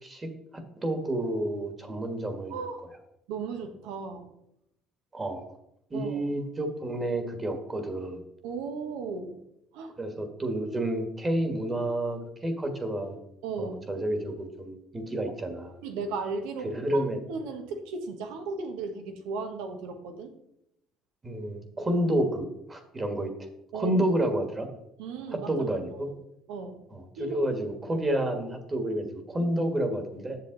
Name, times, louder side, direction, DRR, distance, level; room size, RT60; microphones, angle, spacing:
voice 1, 0.0-2.6 5.1-5.4 5.9-8.2 10.0-13.2 13.6-15.7 16.6-17.2 21.2-23.3 23.7-24.7 25.3-26.1 26.9-30.4, right 1 dB, 25° right, 6 dB, 1.6 m, -30 dB
voice 2, 2.5-2.8 3.3-4.3 5.9-6.3 8.4-9.4 9.7-9.9 13.4-13.8 15.2-15.3 15.8-17.0 17.3-20.3 23.7-24.0 25.0-26.0 26.5-26.8 27.2-27.4 29.4-29.5, right 4 dB, 85° right, 6 dB, 1.1 m, -36 dB
7.4 x 7.1 x 3.9 m, 0.79 s
supercardioid pair, 85°, 0 cm